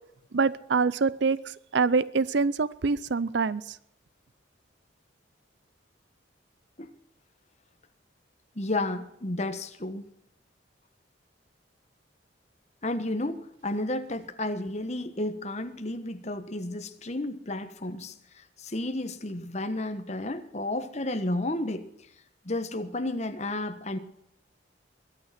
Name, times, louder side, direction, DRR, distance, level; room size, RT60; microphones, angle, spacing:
voice 1, 0.3-3.8, right 4 dB, 65° right, 19 dB, 0.5 m, -25 dB
voice 2, 8.5-10.1 12.8-21.9 22.4-24.0, left 2 dB, 35° left, 9 dB, 1.3 m, -32 dB
22.0 x 9.3 x 5.9 m, 0.76 s
head